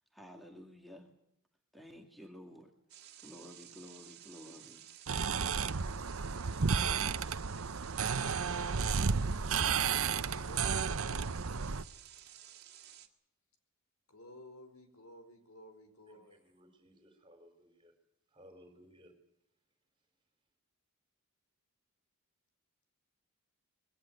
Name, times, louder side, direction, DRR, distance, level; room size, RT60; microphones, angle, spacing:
voice 1, 0.1-1.1 1.7-2.7 3.2-4.9, equal, ahead, 3 dB, 2.2 m, -52 dB
sound 1, 2.9-13.1, right 11 dB, 50° right, 2.2 m, -54 dB
sound 2, 5.1-11.8, right 5 dB, 70° right, 0.8 m, -32 dB
voice 2, 6.1-7.7 10.0-10.8 14.1-16.4, left 1 dB, 80° left, 7 dB, 4.8 m, -55 dB
voice 3, 16.1-17.9 18.3-19.1, equal, 20° right, 6 dB, 4.3 m, -60 dB
22.0 x 18.0 x 9.3 m, 0.74 s
head